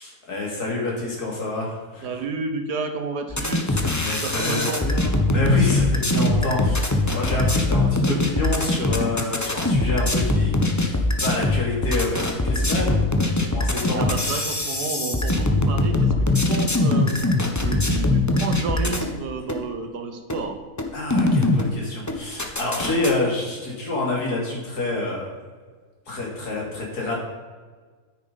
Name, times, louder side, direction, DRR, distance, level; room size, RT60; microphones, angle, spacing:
voice 1, 0.0-2.1 3.6-10.5 10.9-13.0 13.4-14.3 20.9-25.3 26.1-27.2, left 2 dB, 75° left, -3 dB, 3.3 m, -27 dB
voice 2, 2.0-3.7 4.2-4.9 7.9-8.1 13.9-20.6, right 4 dB, 85° right, 6 dB, 1.7 m, -31 dB
sound 1, 3.3-19.1 19.5-19.6 20.3-20.4 20.8-21.7 22.1-23.1, left 2 dB, 15° left, 0.7 m, -22 dB
9.7 x 8.9 x 4.2 m, 1.5 s
omnidirectional pair, 1.7 m